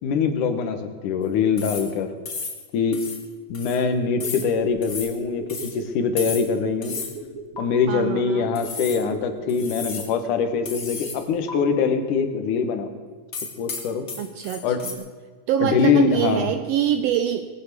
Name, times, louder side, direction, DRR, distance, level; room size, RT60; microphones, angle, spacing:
voice 1, 0.0-2.1 2.7-3.0 3.5-6.9 7.6-12.9 13.6-14.0 14.6-14.8 15.6-16.5, left 5 dB, 85° left, 7 dB, 2.8 m, -23 dB
sound 1, 1.6-2.0 2.3-2.6 2.9-3.2 3.5-3.8 4.2-4.5 4.8-5.1 5.5-5.7 6.2-6.5 6.8-7.1 7.6-7.7 8.5-9.0 9.5-10.1 10.7-11.2 11.5-11.6 13.3-14.9, left 5 dB, 35° left, 1.7 m, -33 dB
sound 2, 4.1-10.9 11.2-11.3, right 4 dB, 55° right, 1.7 m, -39 dB
voice 2, 7.9-8.5 14.2-15.0 15.5-17.5, right 10 dB, 80° right, 10 dB, 1.4 m, -25 dB
19.5 x 9.6 x 6.7 m, 1.5 s
omnidirectional pair, 3.5 m